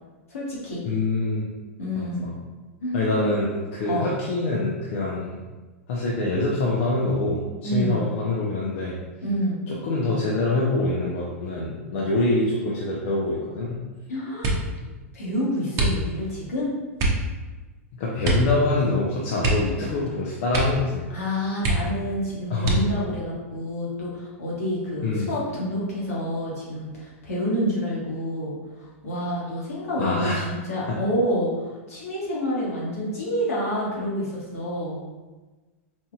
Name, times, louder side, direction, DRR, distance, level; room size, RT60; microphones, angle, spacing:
voice 1, 0.3-0.8 1.8-2.3 2.8-3.3 3.8-4.1 7.6-8.0 9.2-9.6 14.1-14.5 15.1-16.7 21.1-35.0, equal, 80° left, -6 dB, 1.5 m, -28 dB
voice 2, 0.8-1.5 1.9-2.3 2.9-5.3 5.9-9.0 9.7-13.8 14.8-14.9 17.9-21.0 22.5-22.8 25.0-25.3 30.0-30.5 30.9-31.0, left 2 dB, 60° left, -5 dB, 0.7 m, -25 dB
sound 1, 14.4-14.8 15.7-16.4 16.9-17.3 18.2-18.6 18.8-18.9 19.4-20.1 20.5-20.9 21.2-21.3 21.6-22.1 22.6-23.1 23.9-24.5 24.9-25.2, right 2 dB, 40° right, 0.8 m, -25 dB
4.4 x 2.7 x 2.4 m, 1.2 s
hypercardioid pair, 105°, 8 cm